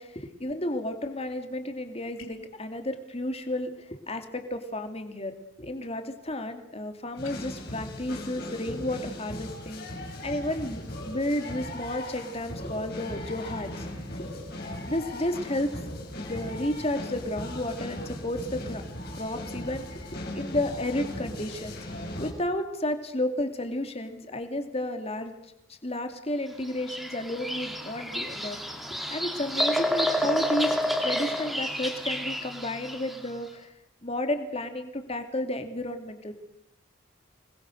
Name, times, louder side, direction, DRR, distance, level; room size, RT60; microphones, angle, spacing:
voice 1, 0.0-13.9 14.9-15.7 16.2-18.8 19.1-21.8 22.2-25.3 25.7-28.6 29.1-30.8 31.0-33.7 34.0-36.3, left 1 dB, 30° left, 7 dB, 2.7 m, -32 dB
sound 1, 2.2-2.6 7.1-7.4, left 3 dB, 80° left, 4.3 m, -47 dB
sound 2, 7.2-22.3, left 1 dB, 50° left, 6.0 m, -38 dB
Bird vocalization bird call bird song, 26.6-33.3, equal, ahead, 2.5 m, -29 dB
27.5 x 21.0 x 6.6 m, 0.81 s
head